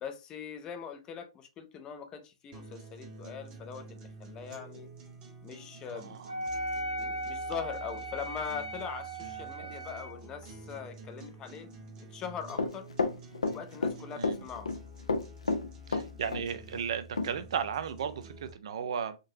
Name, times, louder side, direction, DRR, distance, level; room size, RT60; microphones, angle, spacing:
voice 1, 0.0-4.9 5.4-6.2 7.0-11.7 12.1-12.9 13.5-14.7, left 7 dB, 25° left, 0.4 m, -41 dB
sound 1, 2.5-18.5, right 1 dB, 25° right, 0.8 m, -49 dB
Wind instrument woodwind instrument, 6.3-10.2, right 2 dB, 75° right, 1.0 m, -37 dB
Run, 12.6-14.0 14.2-14.8 15.1-16.4 16.7-16.8 17.2-17.3, left 3 dB, 75° left, 0.5 m, -30 dB
voice 2, 14.1-14.4 15.9-19.2, right 7 dB, 55° right, 0.4 m, -35 dB
3.7 x 2.6 x 2.6 m
figure-of-eight pair, 115°, 3 cm